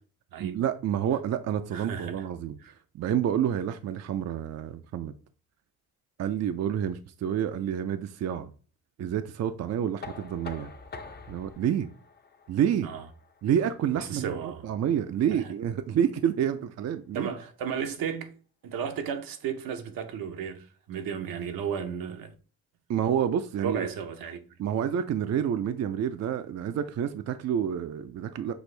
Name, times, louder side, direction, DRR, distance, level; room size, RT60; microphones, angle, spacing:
voice 1, 0.4-2.6 2.9-5.1 6.2-8.5 9.0-10.7 11.3-11.9 12.5-12.9 13.4-17.4 22.9-23.9 24.6-28.5, right 9 dB, 50° right, 0.4 m, -28 dB
voice 2, 1.7-2.3 2.6-2.7 12.8-13.0 13.9-14.6 15.3-15.5 17.1-18.3 18.6-22.3 23.6-24.4, right 7 dB, 75° right, 0.8 m, -34 dB
Knock, 10.0-15.8, left 4 dB, 30° left, 0.6 m, -47 dB
6.2 x 2.4 x 3.2 m
cardioid pair, 75°, 35 cm